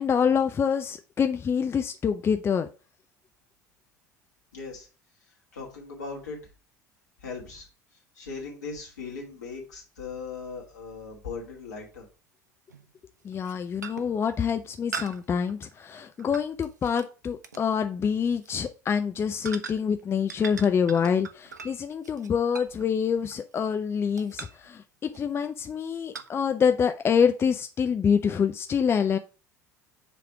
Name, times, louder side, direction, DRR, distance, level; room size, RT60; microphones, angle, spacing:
voice 1, 0.0-2.7 13.2-29.2, left 7 dB, 25° left, 8 dB, 0.5 m, -26 dB
voice 2, 4.5-4.9 5.5-6.4 7.2-7.7 8.2-12.1, left 4 dB, 75° left, -2 dB, 2.3 m, -38 dB
sound 1, 8.9-9.0 11.4-11.5 12.7-12.9 13.3-13.5 13.8-14.2 14.9-17.1 17.4-17.7 18.3-18.5 19.5-20.0 20.3-23.8 24.2-24.7 25.1-25.5 26.1-26.3, right 5 dB, 80° right, 0.5 m, -41 dB
7.5 x 3.4 x 4.6 m, 0.34 s
figure-of-eight pair, 65°, 9 cm